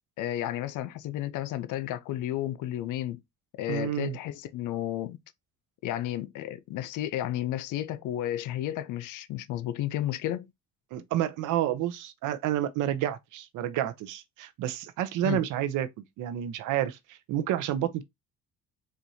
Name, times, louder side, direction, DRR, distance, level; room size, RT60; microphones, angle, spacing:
voice 1, 0.2-3.2 3.6-5.2 5.8-10.5 15.2-15.4, left 12 dB, 85° left, 0.5 m, -32 dB
voice 2, 3.7-4.2 10.9-15.9 16.2-18.0, right 12 dB, 85° right, 0.6 m, -30 dB
4.3 x 2.5 x 2.6 m
cardioid pair, 90°, 30 cm